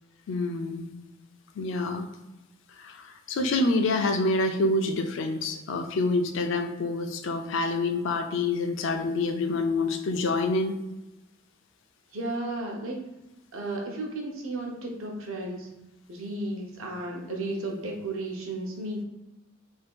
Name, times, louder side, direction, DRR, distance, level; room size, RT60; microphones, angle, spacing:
voice 1, 0.3-0.9 1.6-2.0 2.8-10.7, left 2 dB, 60° left, 6 dB, 0.4 m, -27 dB
voice 2, 12.1-13.1 13.5-15.7 16.1-19.0, right 2 dB, 80° right, 0 dB, 0.7 m, -33 dB
2.7 x 2.4 x 3.6 m, 1.0 s
head